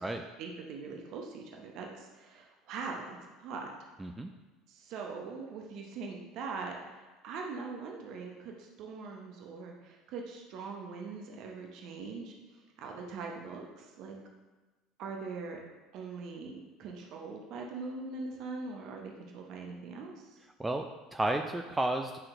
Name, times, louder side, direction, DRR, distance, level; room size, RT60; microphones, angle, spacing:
voice 1, 0.4-3.1 3.4-3.7 4.7-14.2 15.0-15.6 15.9-20.4, right 4 dB, 50° right, 1 dB, 0.9 m, -42 dB
voice 2, 4.0-4.3 20.6-22.3, right 1 dB, 10° right, 4 dB, 0.4 m, -32 dB
9.9 x 5.6 x 2.6 m, 1.2 s
figure-of-eight pair, 65°, 0 cm